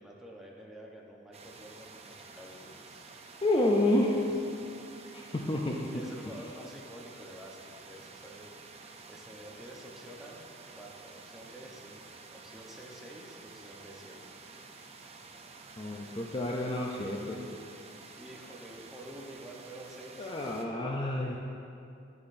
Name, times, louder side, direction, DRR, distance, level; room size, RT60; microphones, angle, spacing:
voice 1, 0.0-3.0 3.6-4.3 4.9-5.2 5.9-10.4 10.7-14.4 18.2-20.5, right 1 dB, ahead, -3 dB, 0.9 m, -49 dB
sound 1, 1.3-20.7, right 4 dB, 35° right, 0.5 m, -51 dB
voice 2, 3.4-4.1 5.1-5.9 15.8-17.4 20.2-21.4, left 1 dB, 25° left, -1 dB, 0.5 m, -29 dB
10.5 x 8.4 x 2.6 m, 2.6 s
head